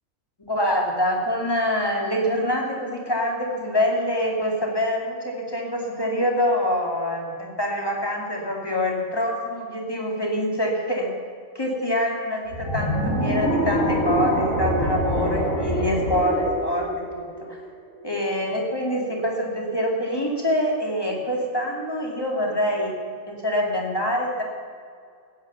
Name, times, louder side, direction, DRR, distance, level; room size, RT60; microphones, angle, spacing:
voice 1, 0.4-11.1 11.5-17.6 18.0-22.9 23.4-24.4, equal, 15° left, -1 dB, 2.5 m, -25 dB
sound 1, 12.5-17.7, equal, 65° left, 3.5 m, -25 dB
15.5 x 9.4 x 7.0 m, 2.2 s
omnidirectional pair, 1.4 m